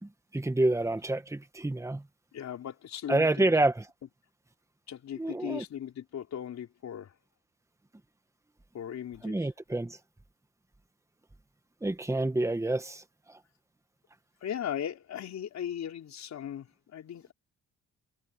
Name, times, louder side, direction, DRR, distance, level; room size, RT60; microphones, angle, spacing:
voice 1, 0.0-2.0 3.1-3.9 5.2-5.6 9.2-10.0 11.8-13.0 13.3-13.4, right 2 dB, 10° right, 1.8 m, -28 dB
voice 2, 2.3-3.5 4.9-7.1 8.7-9.5 14.4-17.3, left 9 dB, 65° left, 4.5 m, -38 dB
cardioid pair, 90°, 30 cm